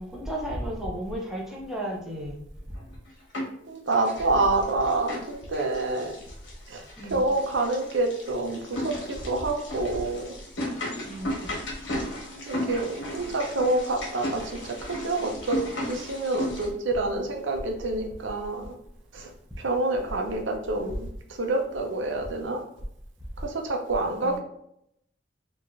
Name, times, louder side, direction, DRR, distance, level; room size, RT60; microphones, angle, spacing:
voice 1, 0.0-2.4 7.0-7.2 11.0-11.5 24.2-24.4, equal, 5° right, -3 dB, 0.7 m, -34 dB
sound 1, 2.7-3.6 3.9-16.7, left 1 dB, 85° left, 1.2 m, -35 dB
voice 2, 3.7-6.2 6.7-10.3 12.5-15.6 15.9-18.7 19.1-19.3 19.6-21.1 21.4-22.6 23.4-24.4, right 2 dB, 90° right, 2 dB, 0.6 m, -27 dB
4.6 x 2.5 x 2.5 m, 0.75 s
head